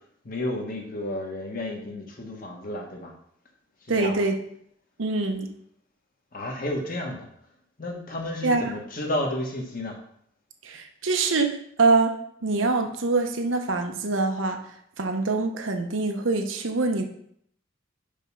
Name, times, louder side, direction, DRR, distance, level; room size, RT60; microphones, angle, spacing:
voice 1, 0.2-3.1 3.9-4.2 6.3-7.3 7.8-10.0, left 1 dB, 45° left, 1 dB, 1.4 m, -32 dB
voice 2, 3.9-4.4 5.0-5.5 8.4-8.8 10.6-12.2 12.4-14.6 15.0-17.0, right 3 dB, 80° right, 5 dB, 0.9 m, -24 dB
5.4 x 4.9 x 5.5 m, 0.68 s
head